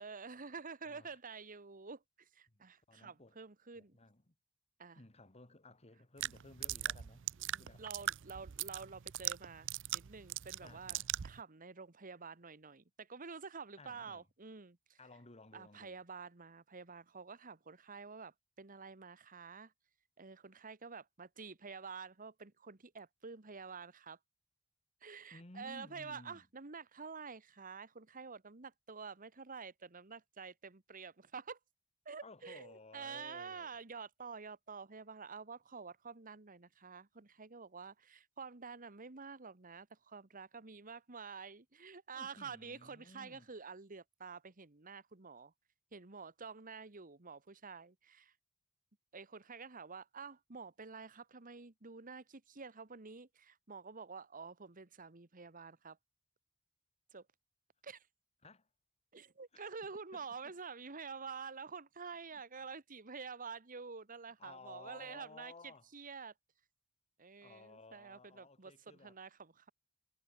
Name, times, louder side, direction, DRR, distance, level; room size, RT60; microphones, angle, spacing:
voice 1, 0.0-4.0 4.8-5.0 7.5-11.0 11.2-15.0 15.5-19.7 20.2-24.2 25.0-31.6 32.0-45.5 45.9-48.3 49.1-56.0 57.1-57.2 57.8-58.0 59.1-65.5 65.9-66.3 67.2-69.7, right 5 dB, 40° right, 1.4 m, -49 dB
voice 2, 0.9-1.2 2.5-3.4 3.7-4.3 4.9-7.3 7.6-7.9 10.6-11.1 13.8-14.3 15.0-16.0 25.3-26.5 32.2-33.7 42.1-43.5 58.4-58.7 59.5-59.8 60.1-60.5 62.2-62.7 64.4-65.9 67.4-69.2, left 2 dB, 30° left, 2.0 m, -57 dB
sound 1, 6.2-11.4, right 13 dB, 60° right, 0.5 m, -41 dB
head